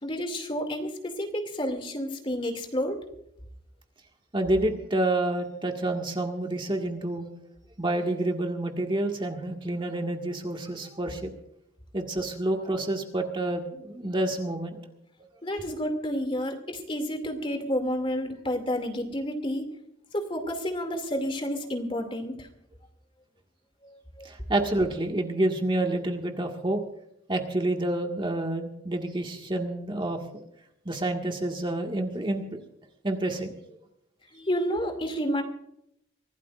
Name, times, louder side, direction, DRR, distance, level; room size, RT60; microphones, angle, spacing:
voice 1, 0.0-3.0 15.4-19.7 20.1-22.5 23.8-24.3 34.3-35.4, equal, 30° left, 5 dB, 2.5 m, -30 dB
voice 2, 4.3-7.3 7.8-11.3 11.9-14.8 24.2-26.8 27.3-30.2 30.9-32.6 33.0-33.5, right 1 dB, 25° right, 2 dB, 1.8 m, -28 dB
24.5 x 16.5 x 2.5 m, 0.77 s
head